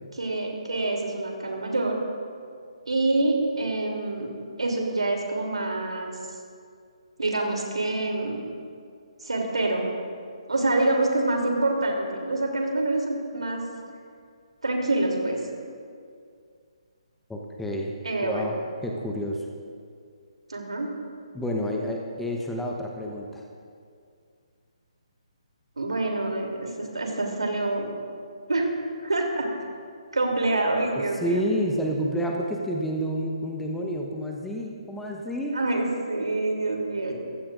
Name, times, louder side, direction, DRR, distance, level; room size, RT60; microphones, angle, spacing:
voice 1, 0.2-2.0 2.9-4.3 4.6-6.2 7.2-8.4 9.2-9.9 10.5-13.6 14.6-15.4 18.0-18.4 20.5-20.9 25.8-27.9 28.5-28.7 29.0-29.5 30.1-31.4 35.5-37.1, right 2 dB, 70° right, 0 dB, 3.2 m, -26 dB
voice 2, 17.3-17.9 18.2-18.5 18.8-19.5 21.3-23.4 31.2-35.6, equal, 5° left, 0 dB, 1.1 m, -29 dB
23.5 x 15.5 x 2.6 m, 2.3 s
figure-of-eight pair, 140°, 3 cm